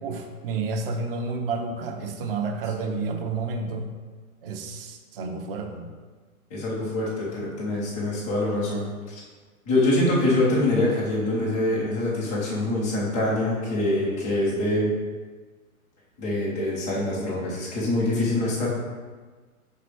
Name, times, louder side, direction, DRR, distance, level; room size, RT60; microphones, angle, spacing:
voice 1, 0.0-3.9 4.4-5.9, right 4 dB, 40° right, 4 dB, 0.9 m, -30 dB
voice 2, 6.5-9.1 9.6-14.9 16.2-18.7, left 1 dB, 5° left, -8 dB, 0.4 m, -25 dB
5.9 x 5.1 x 4.4 m, 1.4 s
figure-of-eight pair, 120°, 44 cm